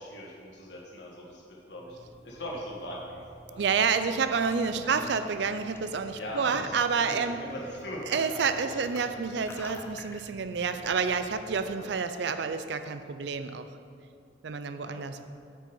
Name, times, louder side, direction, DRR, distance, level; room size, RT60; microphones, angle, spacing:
voice 1, 0.0-1.4 1.7-2.0 2.2-3.2 3.5-3.6 4.0-4.2 4.8-5.0 6.2-6.8 7.1-9.1 11.6-11.8 14.8-15.0, equal, 65° left, -3 dB, 1.5 m, -40 dB
sound 1, 1.7-11.7, equal, 15° left, 0.7 m, -51 dB
voice 2, 3.6-7.4 8.1-13.7 14.4-15.2, right 5 dB, 65° right, 10 dB, 0.4 m, -29 dB
8.5 x 6.2 x 5.4 m, 2.4 s
head